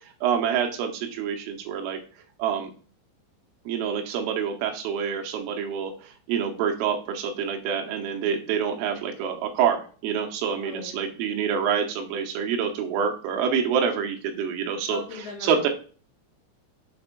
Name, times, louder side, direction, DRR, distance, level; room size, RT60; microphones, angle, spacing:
voice 1, 0.2-2.0 2.4-2.7 3.7-15.0 15.4-15.7, right 7 dB, 85° right, 4 dB, 3.6 m, -27 dB
voice 2, 10.6-11.0 14.9-15.7, left 3 dB, 65° left, -1 dB, 2.7 m, -38 dB
7.8 x 3.4 x 6.0 m, 0.39 s
omnidirectional pair, 6.0 m